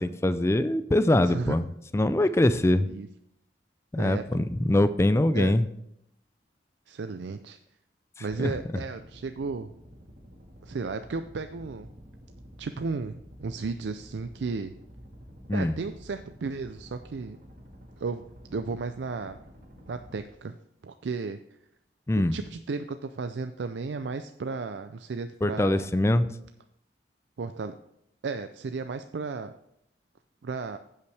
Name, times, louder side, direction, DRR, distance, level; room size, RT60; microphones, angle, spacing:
voice 1, 0.0-1.7 1.9-2.9 3.9-5.6 8.4-8.5 15.5-15.8 22.1-22.3 25.4-26.3, left 1 dB, 15° left, 12 dB, 0.4 m, -23 dB
voice 2, 1.0-1.6 2.9-3.1 4.0-4.4 5.3-5.5 6.9-7.6 8.2-9.7 10.6-11.9 12.6-14.7 15.5-17.4 18.0-18.2 18.5-19.4 19.9-20.6 20.8-21.4 22.3-25.9 27.4-27.8 28.2-29.6 30.4-30.8, right 4 dB, 85° right, 9 dB, 0.4 m, -34 dB
sound 1, 8.9-20.2, equal, 55° right, 1.9 m, -50 dB
15.5 x 5.7 x 3.3 m, 0.78 s
head